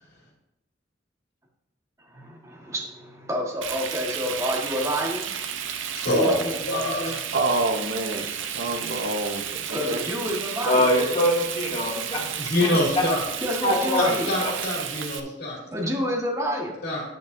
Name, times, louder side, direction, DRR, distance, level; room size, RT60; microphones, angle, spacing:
voice 1, 2.1-5.3 6.1-7.2 9.7-10.9 13.4-14.3 15.7-16.8, equal, 15° right, -1 dB, 1.5 m, -29 dB
Frying (food), 3.6-15.2, right 8 dB, 85° right, 0.6 m, -32 dB
voice 2, 6.0-7.1 12.4-13.2 13.9-15.6 16.8-17.0, left 1 dB, 55° left, -3 dB, 2.7 m, -25 dB
voice 3, 7.3-10.0, right 2 dB, 60° right, 4 dB, 0.9 m, -27 dB
voice 4, 10.7-12.3 12.6-12.7 13.0-13.1 13.6-14.1 14.4-14.5, left 1 dB, 35° left, -4 dB, 2.2 m, -23 dB
9.2 x 8.6 x 2.7 m, 0.88 s
head